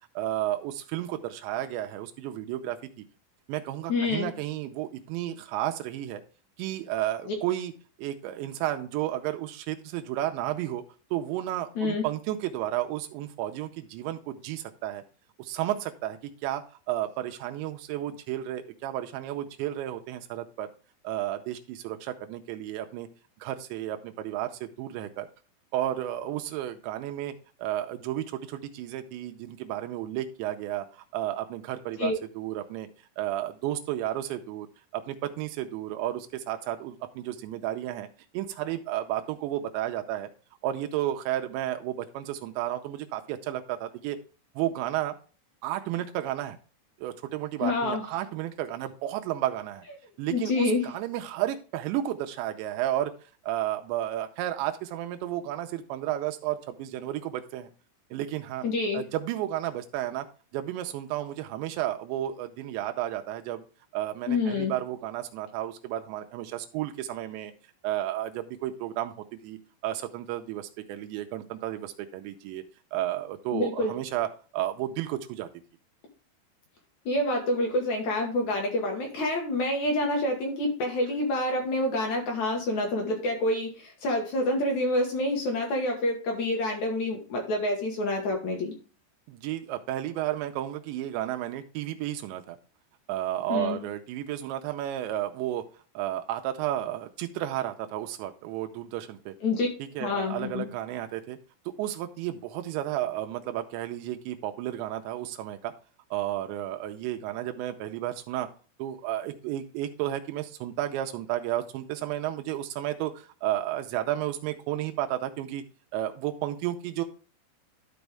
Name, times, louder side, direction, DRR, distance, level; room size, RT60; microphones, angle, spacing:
voice 1, 0.2-2.8 3.5-6.2 6.6-7.7 8.0-10.8 11.1-15.0 15.4-20.7 21.0-23.1 23.4-25.3 25.7-27.3 27.6-30.9 31.1-32.9 33.2-34.7 34.9-38.1 38.3-40.3 40.6-44.2 44.6-45.2 45.6-46.6 47.0-49.8 50.2-53.1 53.4-57.7 58.1-58.7 58.9-60.3 60.5-63.6 63.9-67.5 67.8-72.6 72.9-74.3 74.5-75.5 89.3-92.6 93.1-95.6 95.9-99.4 99.8-101.4 101.8-105.7 106.1-108.5 108.8-115.6 115.9-117.0, right 13 dB, 90° right, 6 dB, 2.9 m, -32 dB
voice 2, 3.9-4.3 7.3-7.4 11.8-12.0 32.0-32.2 47.6-48.1 50.3-50.9 58.6-59.0 64.3-64.7 73.5-74.0 77.1-88.7 93.5-93.8 99.4-99.7 100.0-100.7, left 2 dB, 60° left, 1 dB, 2.1 m, -27 dB
12.0 x 5.2 x 3.4 m, 0.37 s
omnidirectional pair, 5.0 m